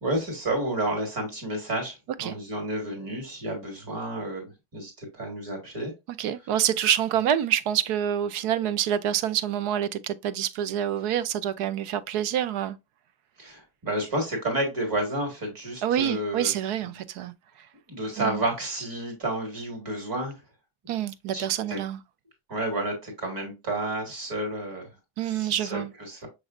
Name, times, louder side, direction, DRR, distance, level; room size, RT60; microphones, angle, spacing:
voice 1, 0.0-5.9 13.4-16.5 16.8-17.0 17.9-20.4 21.3-21.8 22.5-24.9 25.2-26.3, right 1 dB, 45° right, 1.9 m, -31 dB
voice 2, 6.2-12.8 15.8-17.3 18.2-18.4 20.9-22.0 25.2-25.9, right 10 dB, 85° right, 0.6 m, -27 dB
6.2 x 3.1 x 2.5 m
cardioid pair, 175°, 49 cm